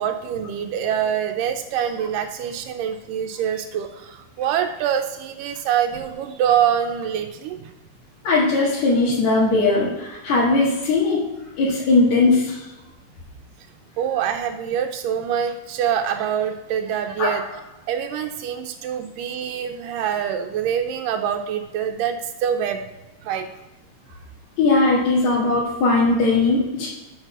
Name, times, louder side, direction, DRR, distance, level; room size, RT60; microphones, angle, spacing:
voice 1, 0.0-7.7 14.0-17.4 17.9-22.8 23.2-23.5, right 9 dB, 90° right, 4 dB, 2.3 m, -25 dB
voice 2, 8.2-11.3 11.6-12.6 17.2-17.3 24.6-26.9, left 3 dB, 60° left, -7 dB, 2.9 m, -19 dB
6.6 x 6.6 x 6.1 m, 1.1 s
omnidirectional pair, 3.9 m